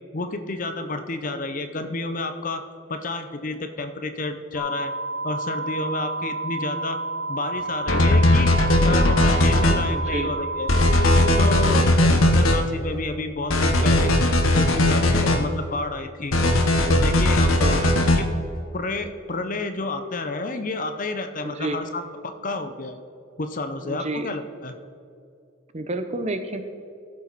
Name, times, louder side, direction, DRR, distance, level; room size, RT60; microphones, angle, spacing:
voice 1, 0.1-2.6 2.9-4.9 5.2-7.0 7.3-8.5 8.8-10.7 11.4-14.2 14.6-16.3 16.9-18.3 18.7-23.0 23.4-24.8, left 2 dB, 40° left, 8 dB, 0.7 m, -30 dB
sound 1, 4.6-11.7, right 2 dB, 5° right, 2.5 m, -30 dB
sound 2, 7.9-9.8 10.7-12.6 13.5-15.4 16.3-18.2, left 1 dB, 80° left, 1.1 m, -18 dB
voice 2, 9.9-10.4 17.5-18.1 21.4-21.8 23.8-24.3 25.7-26.6, right 2 dB, 30° right, 8 dB, 0.6 m, -30 dB
15.0 x 7.2 x 4.0 m, 2.4 s
head